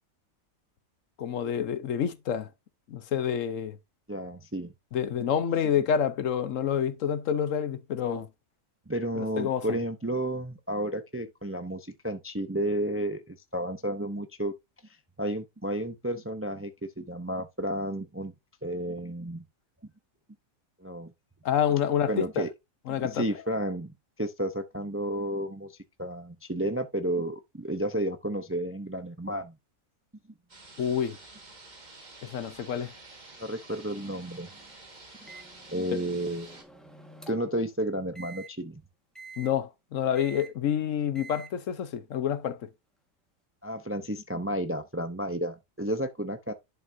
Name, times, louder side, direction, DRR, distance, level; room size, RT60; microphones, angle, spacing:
voice 1, 1.2-2.5 2.9-3.8 4.9-8.3 9.2-9.8 21.4-22.4 22.9-23.2 30.8-31.2 32.2-32.9 39.4-42.6, left 8 dB, 70° left, 1.1 m, -28 dB
voice 2, 4.1-4.7 8.9-14.5 15.2-16.7 17.0-18.3 18.6-19.4 20.8-21.1 22.1-22.5 23.0-29.5 33.4-34.5 35.7-36.6 37.3-38.8 43.6-46.5, right 1 dB, 15° right, 0.4 m, -32 dB
sound 1, 30.5-36.6, right 2 dB, 35° right, 1.9 m, -50 dB
Microwave oven, 35.3-37.6 38.2-38.5 39.2-39.5 40.2-40.5 41.2-41.5, right 4 dB, ahead, 1.4 m, -47 dB
11.0 x 5.7 x 2.7 m
omnidirectional pair, 1.4 m